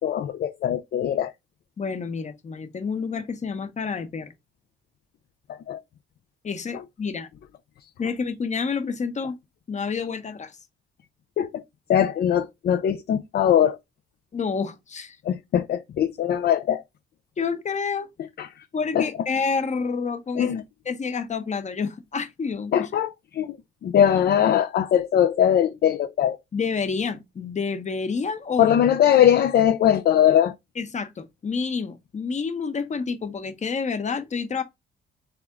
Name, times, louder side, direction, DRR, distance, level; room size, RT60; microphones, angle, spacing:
voice 1, 0.0-1.3 5.5-5.8 11.4-11.6 11.9-13.8 15.2-16.8 18.4-18.7 18.9-19.1 20.4-20.6 22.7-23.6 23.8-26.4 28.6-30.5, left 10 dB, 55° left, 0.5 m, -21 dB
voice 2, 1.8-4.3 6.4-7.3 8.0-9.3 9.7-10.6 14.3-15.2 17.4-18.1 18.7-20.5 20.9-22.9 26.5-28.8 30.8-34.6, left 5 dB, 35° left, 0.9 m, -28 dB
3.5 x 3.5 x 3.7 m
cardioid pair, 90°, 20 cm